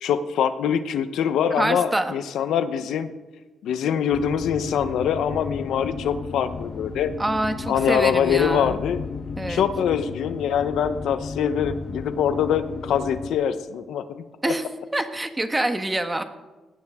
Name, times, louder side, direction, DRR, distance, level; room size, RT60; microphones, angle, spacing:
voice 1, 0.0-3.1 3.6-7.1 7.7-9.0 9.5-14.5, left 8 dB, 85° left, 11 dB, 1.0 m, -24 dB
voice 2, 1.6-2.1 7.2-8.8 9.4-9.6 14.4-14.6 14.9-16.2, right 1 dB, 15° right, 7 dB, 1.3 m, -25 dB
sound 1, 4.1-13.3, left 4 dB, 45° left, 1.2 m, -34 dB
19.0 x 17.0 x 3.7 m, 1.2 s
cardioid pair, 125°, 0 cm